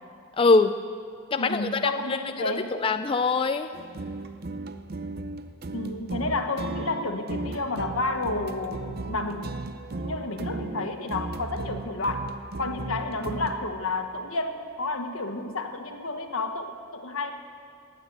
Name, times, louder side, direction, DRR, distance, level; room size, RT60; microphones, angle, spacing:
voice 1, 0.4-0.7 1.3-3.7, left 3 dB, 25° left, 8 dB, 0.3 m, -23 dB
voice 2, 1.4-2.7 5.7-9.6 10.0-12.3 12.6-17.3, left 2 dB, 85° left, 6 dB, 1.4 m, -31 dB
sound 1, 3.7-13.8, right 2 dB, 45° right, 0.6 m, -36 dB
18.5 x 9.4 x 8.1 m, 2.3 s
head